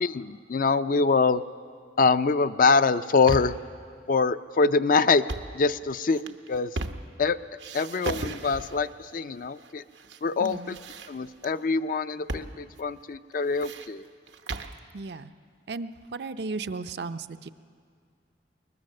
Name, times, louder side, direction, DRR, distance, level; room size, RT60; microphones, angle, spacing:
voice 1, 0.0-1.4 2.0-3.6 4.1-5.2 5.5-6.8 7.2-7.4 7.7-9.8 10.2-10.8 11.1-14.0, left 4 dB, 50° left, 12 dB, 0.4 m, -24 dB
sound 1, 2.9-3.7 5.1-5.6 6.1-7.3 7.6-8.9 9.6-10.2 10.4-11.5 12.3-12.5 12.8-12.9 13.3-14.8, right 2 dB, 85° right, 0.9 m, -36 dB
voice 2, 10.4-10.8 14.9-15.3 15.7-17.5, right 3 dB, 65° right, 10 dB, 0.6 m, -35 dB
22.0 x 20.0 x 6.6 m, 2.2 s
head